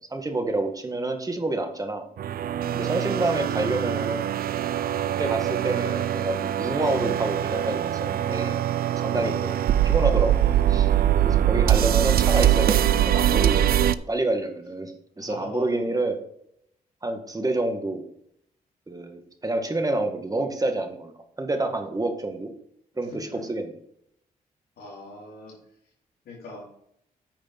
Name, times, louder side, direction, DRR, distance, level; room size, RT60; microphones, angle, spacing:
voice 1, 0.0-2.1 2.7-4.3 5.2-8.6 8.9-10.9 11.3-12.8 13.0-16.2 17.0-18.0 18.9-21.1 21.4-22.5 23.0-23.7, right 2 dB, 25° right, 5 dB, 1.8 m, -28 dB
sound 1, 2.2-13.9, right 11 dB, 75° right, 0.5 m, -23 dB
voice 2, 15.2-15.9 23.1-23.5 24.8-25.6 26.3-26.7, left 2 dB, 85° left, -4 dB, 3.7 m, -41 dB
9.0 x 4.9 x 5.9 m, 0.72 s
cardioid pair, 65°, 16 cm